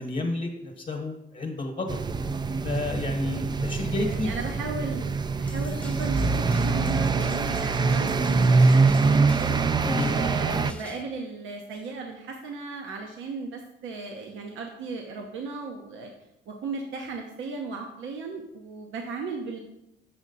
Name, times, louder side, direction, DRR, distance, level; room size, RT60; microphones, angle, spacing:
voice 1, 0.0-2.0 2.6-4.3 9.8-10.1, left 3 dB, 40° left, 2 dB, 1.1 m, -31 dB
sound 1, 1.9-10.7, right 4 dB, 20° right, 0.3 m, -24 dB
voice 2, 3.2-3.7 4.0-9.7 10.0-16.1 16.5-19.6, right 3 dB, 75° right, 2 dB, 0.9 m, -36 dB
sound 2, 5.5-11.0, left 1 dB, 5° left, 0.8 m, -44 dB
6.2 x 6.1 x 4.0 m, 0.85 s
cardioid pair, 90°, 20 cm